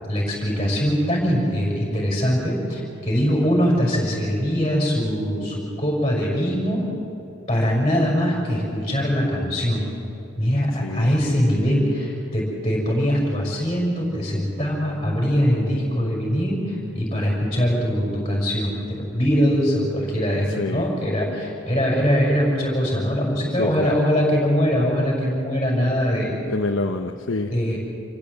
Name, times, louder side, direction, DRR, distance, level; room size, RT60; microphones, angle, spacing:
voice 1, 0.1-6.9 7.5-9.9 10.4-26.3 27.5-27.8, equal, 20° left, -4 dB, 6.1 m, -22 dB
voice 2, 10.8-11.3 20.6-20.8 23.6-24.0 26.4-27.5, left 2 dB, 75° left, 3 dB, 1.0 m, -27 dB
27.5 x 15.5 x 8.2 m, 2.9 s
head